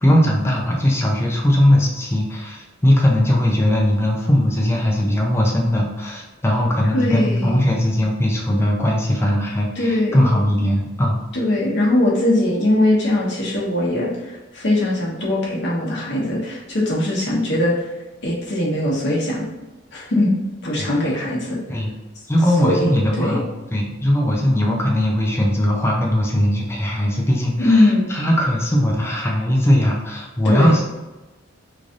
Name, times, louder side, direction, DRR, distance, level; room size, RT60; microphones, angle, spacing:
voice 1, 0.0-11.2 20.8-20.9 21.7-21.9 22.3-30.9, left 1 dB, 15° left, -1 dB, 0.5 m, -19 dB
voice 2, 6.9-7.7 9.8-10.3 11.3-17.9 18.2-19.5 19.9-20.3 20.6-21.6 22.6-23.4 27.6-28.1 30.4-30.8, left 1 dB, 65° left, -4 dB, 1.1 m, -20 dB
3.2 x 2.6 x 3.7 m, 1.1 s
head